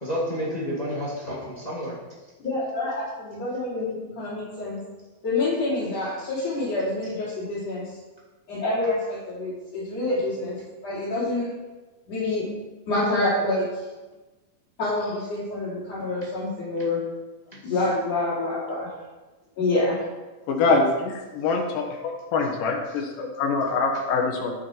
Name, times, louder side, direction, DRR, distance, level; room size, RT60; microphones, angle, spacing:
voice 1, 0.0-2.0 17.5-17.6 23.9-24.0, equal, 15° left, -5 dB, 1.7 m, -30 dB
voice 2, 2.4-4.8 5.2-7.8 8.5-11.5 12.1-12.5 12.9-13.8 14.8-17.0 17.6-18.9 19.6-20.0, left 2 dB, 50° left, -11 dB, 3.9 m, -27 dB
voice 3, 20.5-20.9 21.3-21.9 22.3-24.5, left 4 dB, 70° left, 0 dB, 3.0 m, -23 dB
11.0 x 8.5 x 4.6 m, 1.2 s
omnidirectional pair, 4.1 m